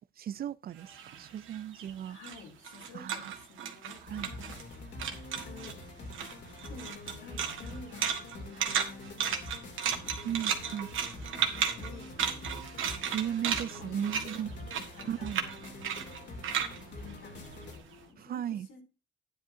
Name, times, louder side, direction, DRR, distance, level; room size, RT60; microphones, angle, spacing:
voice 1, 0.2-2.2 2.9-3.3 4.0-4.5 10.2-10.9 13.1-14.5 15.0-15.4 18.2-18.7, right 10 dB, 50° right, 0.4 m, -36 dB
sound 1, 0.8-4.7 5.0-5.8 6.1-17.9, right 8 dB, 80° right, 1.6 m, -35 dB
voice 2, 2.0-4.5 5.4-5.8 6.7-10.8 11.4-12.5 12.7-16.5 16.8-18.8, left 5 dB, 85° left, 3.0 m, -52 dB
sound 2, 4.1-17.8, left 2 dB, 65° left, 2.7 m, -45 dB
10.0 x 10.0 x 2.7 m
cardioid pair, 90°, 20 cm